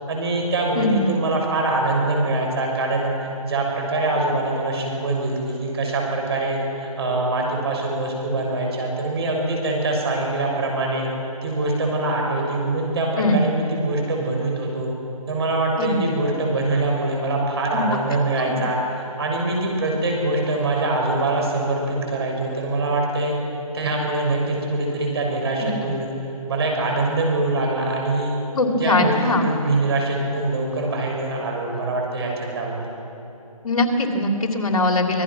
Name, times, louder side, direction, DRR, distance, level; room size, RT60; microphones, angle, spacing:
voice 1, 0.1-3.1 3.4-11.1 11.4-14.9 15.3-23.4 23.7-26.1 26.5-28.4 28.8-32.9, right 2 dB, 45° right, 0 dB, 6.5 m, -23 dB
voice 2, 0.7-1.1 13.2-13.4 15.8-16.1 17.7-17.9 18.4-18.6 25.6-25.7 28.5-29.4 33.6-35.2, left 2 dB, 65° left, 2 dB, 3.1 m, -21 dB
26.0 x 19.5 x 6.2 m, 3.0 s
hypercardioid pair, 160°, 19 cm